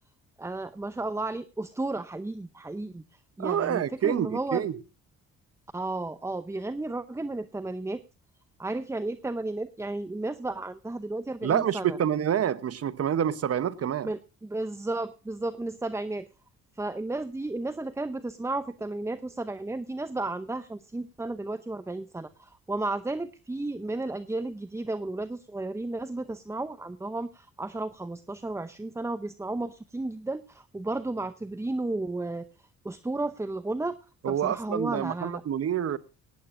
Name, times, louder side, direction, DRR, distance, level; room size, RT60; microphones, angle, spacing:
voice 1, 0.4-4.6 5.7-8.0 8.6-12.0 14.0-16.3 16.8-32.5 32.8-34.0 34.3-35.4, right 2 dB, 10° right, 0.7 m, -33 dB
voice 2, 3.4-4.8 11.4-14.1 34.2-36.0, right 9 dB, 50° right, 1.0 m, -27 dB
18.0 x 17.0 x 2.6 m
cardioid pair, 90°, 30 cm